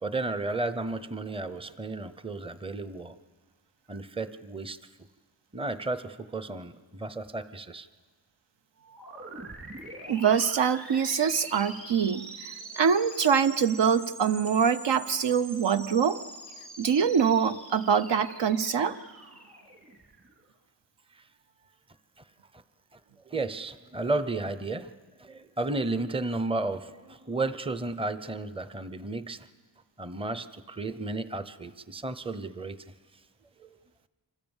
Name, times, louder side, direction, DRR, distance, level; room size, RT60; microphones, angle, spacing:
voice 1, 0.0-3.2 3.9-4.8 5.5-7.9 21.1-21.2 22.2-22.3 22.5-22.6 22.9-23.0 23.3-24.9 25.2-29.5 30.0-32.8 33.6-33.7, right 2 dB, 15° right, 12 dB, 0.7 m, -33 dB
sound 1, 8.8-20.4, right 2 dB, 30° right, 3.3 m, -44 dB
voice 2, 10.1-16.2 16.8-19.0, right 7 dB, 75° right, 11 dB, 0.9 m, -24 dB
26.5 x 26.0 x 7.2 m, 1.4 s
wide cardioid pair, 145°, 43 cm